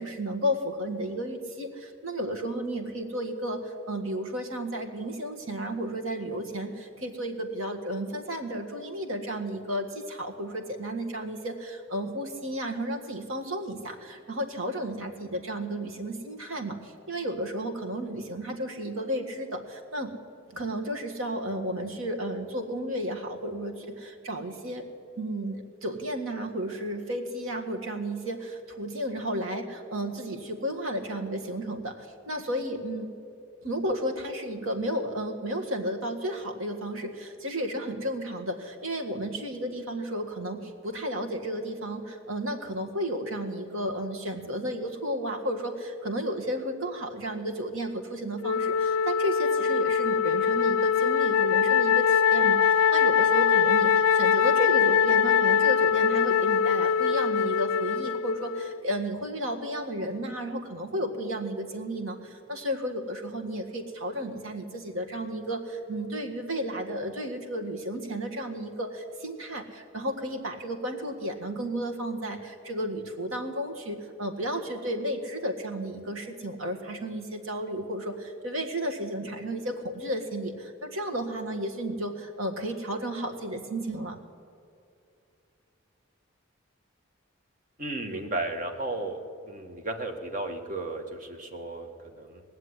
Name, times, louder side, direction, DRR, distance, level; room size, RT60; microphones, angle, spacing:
voice 1, 0.0-20.1 20.5-24.8 25.2-33.1 33.6-84.2, right 1 dB, 80° right, 4 dB, 1.7 m, -33 dB
Wind instrument woodwind instrument, 48.4-58.8, left 7 dB, 85° left, 0.3 m, -23 dB
voice 2, 87.8-89.2 89.5-92.4, right 2 dB, 40° right, 4 dB, 1.4 m, -34 dB
19.0 x 7.5 x 9.6 m, 2.5 s
head